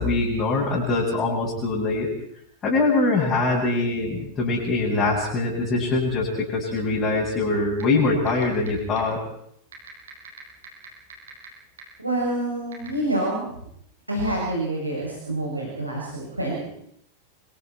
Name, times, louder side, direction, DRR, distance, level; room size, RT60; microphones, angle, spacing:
voice 1, 0.0-2.1 2.6-9.2, left 3 dB, 25° left, -4 dB, 7.8 m, -23 dB
sound 1, 7.8-7.9 8.3-8.7 9.0-9.1 9.7-11.5 11.8-11.9 12.7-12.9, right 8 dB, 65° right, 7.5 m, -41 dB
voice 2, 12.0-13.5 14.1-16.7, right 1 dB, 85° right, -4 dB, 7.8 m, -27 dB
28.0 x 25.5 x 4.6 m, 0.71 s
figure-of-eight pair, 90°, 0 cm